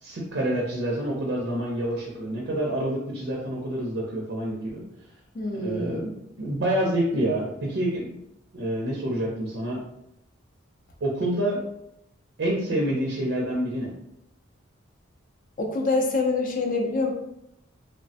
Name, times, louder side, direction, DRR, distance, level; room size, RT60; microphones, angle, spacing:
voice 1, 0.0-4.8 5.5-6.1 6.4-8.2 8.5-9.8 11.0-11.6 12.4-13.9, right 1 dB, 60° right, -3 dB, 0.5 m, -27 dB
voice 2, 5.3-6.0 15.6-17.1, left 3 dB, 40° left, 3 dB, 0.4 m, -25 dB
3.0 x 2.1 x 2.7 m, 0.81 s
head